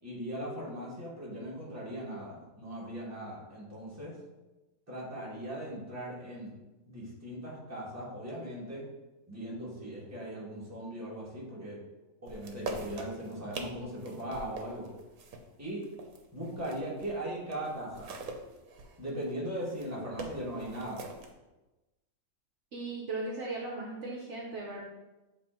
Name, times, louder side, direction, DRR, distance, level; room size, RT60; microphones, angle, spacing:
voice 1, 0.0-4.1 4.9-6.5 6.9-8.8 9.3-11.8 12.2-14.9 15.6-15.9 16.3-18.1 19.0-21.0, right 1 dB, 10° right, -5 dB, 1.5 m, -39 dB
sound 1, 12.3-17.2 17.5-21.3, right 3 dB, 85° right, 1.3 m, -43 dB
voice 2, 22.7-24.8, right 2 dB, 60° right, -2 dB, 1.1 m, -37 dB
7.3 x 3.3 x 4.4 m, 1.1 s
omnidirectional pair, 1.5 m